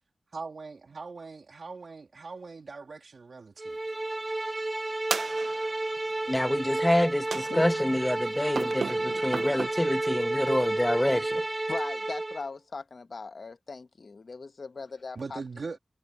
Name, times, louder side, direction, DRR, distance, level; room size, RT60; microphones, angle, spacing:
voice 1, 0.3-3.8 15.2-15.8, right 4 dB, 65° right, 2.4 m, -41 dB
sound 1, 3.6-12.4, right 2 dB, 30° right, 1.5 m, -31 dB
sound 2, 5.1-5.9 7.3-7.9 8.5-9.7, right 5 dB, 80° right, 0.7 m, -34 dB
voice 2, 6.3-11.4, left 1 dB, 10° left, 0.5 m, -27 dB
voice 3, 7.5-7.9 11.7-15.4, left 4 dB, 65° left, 1.1 m, -39 dB
wide cardioid pair, 80°, 0 cm